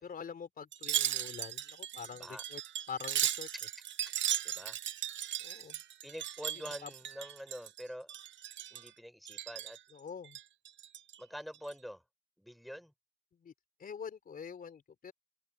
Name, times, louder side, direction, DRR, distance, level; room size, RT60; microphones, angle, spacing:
voice 1, 0.0-2.6 2.9-3.5 5.4-5.8 6.8-6.9 9.9-10.4 13.4-13.5 13.8-15.1, left 6 dB, 45° left, 3.9 m, -45 dB
Wind chime, 0.7-7.8 8.1-8.9 9.3-9.8 10.2-11.2 11.5-11.7, right 11 dB, 65° right, 1.0 m, -37 dB
voice 2, 4.4-4.8 5.6-5.7 6.0-8.1 8.7-9.8 11.2-12.0 12.4-12.9, equal, ahead, 6.6 m, -46 dB
open air
cardioid pair, 90°, 20 cm